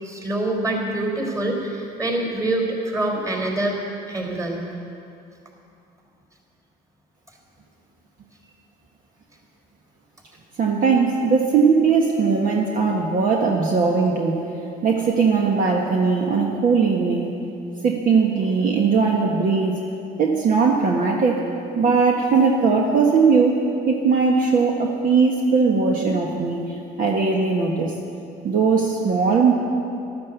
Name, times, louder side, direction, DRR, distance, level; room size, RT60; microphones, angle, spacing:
voice 1, 0.0-3.8 4.1-4.6, right 2 dB, 20° right, 1 dB, 4.0 m, -25 dB
voice 2, 10.6-14.4 14.8-17.4 17.8-19.8 20.2-21.5 21.8-27.9 28.4-29.5, right 5 dB, 55° right, 0 dB, 1.5 m, -19 dB
13.0 x 12.5 x 8.2 m, 2.7 s
cardioid pair, 110°, 17 cm